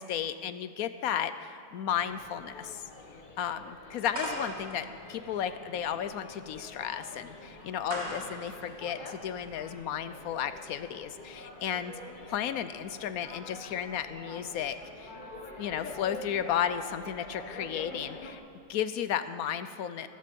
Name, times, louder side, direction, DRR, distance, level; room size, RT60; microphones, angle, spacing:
voice 1, 0.0-2.9 3.4-11.9 12.3-15.1 15.6-18.4 18.7-20.1, left 9 dB, 70° left, 12 dB, 0.9 m, -34 dB
sound 1, 1.9-18.3, left 2 dB, 30° left, 1.3 m, -46 dB
sound 2, 4.1-9.7, right 1 dB, 40° right, 2.8 m, -41 dB
16.0 x 14.0 x 5.3 m, 2.8 s
omnidirectional pair, 1.8 m